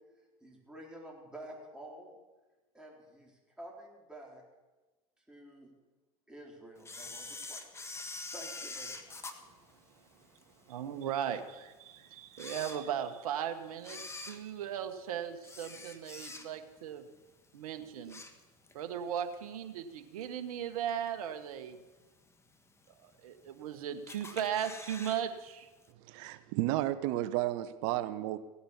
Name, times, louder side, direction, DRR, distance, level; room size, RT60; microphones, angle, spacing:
voice 1, 0.4-2.2 2.7-4.4 5.3-5.7 6.3-7.8 8.3-9.1, right 1 dB, 5° right, -2 dB, 4.1 m, -50 dB
Camera, 6.8-10.4 10.9-11.0 11.7-11.8 12.3-13.3 13.8-16.8 17.1-17.4 17.8-18.8 19.2-19.3 20.2-20.3 20.9-21.3 21.7-21.8 22.0-22.1 22.3-22.4 23.1-23.6 24.1-25.2 25.5-25.6 25.8-25.9, left 3 dB, 15° left, 1.4 m, -45 dB
voice 2, 10.7-17.0 17.5-18.2 18.7-21.8 23.0-25.7, right 9 dB, 80° right, 7 dB, 1.3 m, -37 dB
voice 3, 26.0-28.4, right 15 dB, 60° right, 11 dB, 1.0 m, -32 dB
16.5 x 8.6 x 7.3 m, 1.2 s
hypercardioid pair, 105°, 19 cm